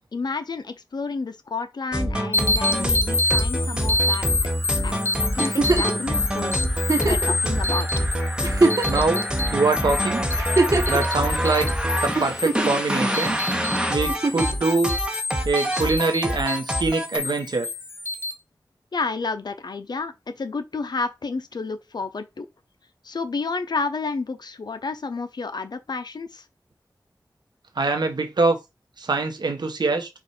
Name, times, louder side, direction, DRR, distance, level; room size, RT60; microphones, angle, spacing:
voice 1, 0.1-4.3 4.8-7.9 18.9-22.5 23.0-26.4, left 4 dB, 70° left, 0.6 m, -30 dB
sound 1, 1.9-17.2, equal, 10° right, 1.0 m, -26 dB
sound 2, 2.3-18.3, left 2 dB, 35° left, 0.8 m, -28 dB
Giggle, 5.4-6.0 6.8-7.3 8.0-8.1 8.4-9.2 10.3-11.0 12.2-12.8 14.1-14.5 16.0-16.1, right 3 dB, 50° right, 1.1 m, -22 dB
voice 2, 8.9-9.2 9.5-10.2 10.9-11.7 12.0-13.4 13.9-14.9 15.4-17.7 27.8-28.6 29.0-30.1, right 3 dB, 75° right, 1.1 m, -23 dB
4.9 x 2.5 x 4.3 m
wide cardioid pair, 55°, 7 cm